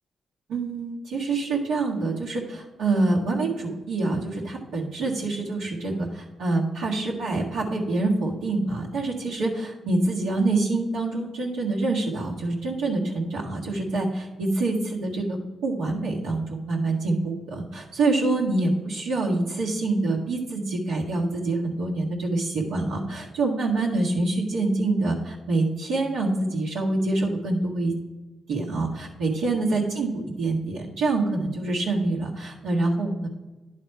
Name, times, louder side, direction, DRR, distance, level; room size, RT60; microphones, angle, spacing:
voice 1, 0.5-27.9 28.5-33.3, right 2 dB, 85° right, -5 dB, 1.8 m, -26 dB
10.5 x 4.2 x 4.6 m, 1.1 s
supercardioid pair, 55°, 0 cm